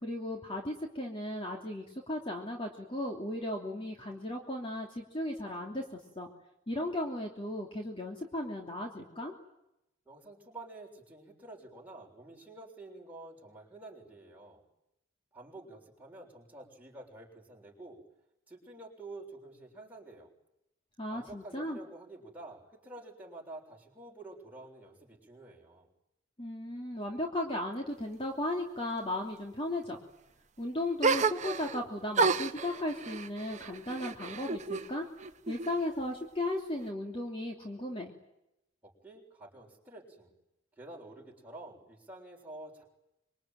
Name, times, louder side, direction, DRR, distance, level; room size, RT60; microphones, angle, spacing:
voice 1, 0.0-5.8 6.2-6.3 6.7-9.3 21.0-21.8 26.4-30.0 30.6-35.0 35.5-38.1, left 1 dB, 30° left, 1 dB, 3.0 m, -36 dB
voice 2, 10.1-14.6 15.3-18.0 18.5-20.3 21.1-25.9 38.8-40.3 40.8-42.8, right 2 dB, 10° right, -2 dB, 6.9 m, -49 dB
sound 1, 31.0-31.8 32.1-34.9 35.2-36.0, right 4 dB, 35° right, 1.1 m, -31 dB
26.5 x 24.0 x 9.3 m, 0.86 s
head